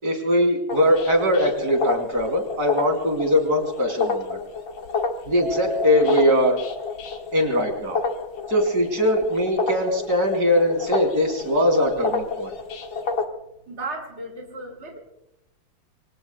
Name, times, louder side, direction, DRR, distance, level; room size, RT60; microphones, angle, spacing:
voice 1, 0.0-4.4 5.3-6.6 7.3-8.0 8.5-12.5, equal, 55° right, 3 dB, 3.4 m, -21 dB
sound 1, 0.7-13.2, left 4 dB, 75° left, 2.3 m, -30 dB
Mallet percussion, 5.4-7.9, right 1 dB, 70° right, 2.8 m, -35 dB
voice 2, 13.7-15.0, right 2 dB, 35° right, 2 dB, 2.8 m, -34 dB
27.0 x 24.5 x 2.2 m, 0.87 s
omnidirectional pair, 2.1 m